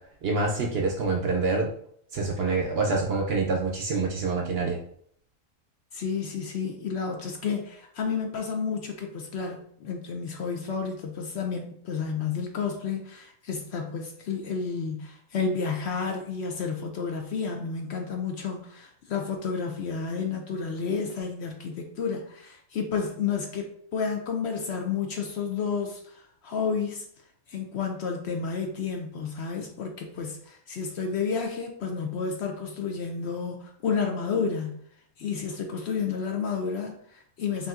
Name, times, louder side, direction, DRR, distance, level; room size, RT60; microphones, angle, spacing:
voice 1, 0.2-1.7 2.1-4.8, right 3 dB, 60° right, 0 dB, 0.7 m, -26 dB
voice 2, 5.9-27.1 27.5-34.8 35.2-37.7, left 5 dB, 65° left, 3 dB, 0.7 m, -31 dB
5.5 x 2.7 x 2.4 m, 0.65 s
omnidirectional pair, 1.4 m